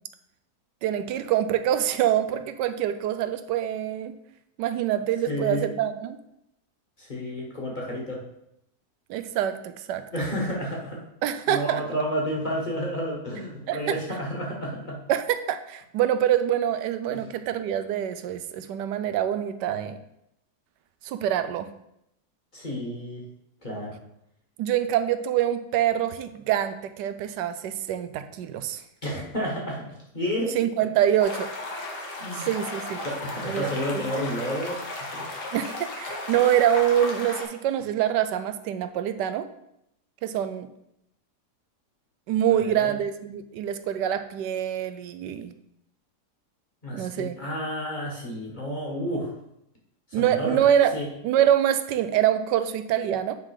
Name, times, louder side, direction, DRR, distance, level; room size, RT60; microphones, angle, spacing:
voice 1, 0.8-4.1 4.6-6.2 9.1-10.0 11.2-11.8 13.7-13.8 15.1-20.0 21.0-21.7 24.6-28.8 30.5-31.5 32.3-33.1 33.5-33.7 33.9-34.0 35.5-39.5 40.2-40.7 42.3-45.5 46.9-47.4 50.1-50.9 51.2-53.3, right 10 dB, 85° right, 10 dB, 1.2 m, -25 dB
voice 2, 5.3-5.7 7.0-8.3 10.1-11.0 11.5-15.0 17.1-17.3 22.5-23.2 23.6-24.0 29.0-30.6 32.2-32.5 33.0-35.3 42.6-42.9 46.8-49.4 50.1-50.6 50.9-51.1, equal, 30° left, -2 dB, 1.6 m, -31 dB
sound 1, 31.2-37.4, left 2 dB, 90° left, 1.9 m, -35 dB
8.9 x 3.7 x 4.8 m, 0.79 s
omnidirectional pair, 1.8 m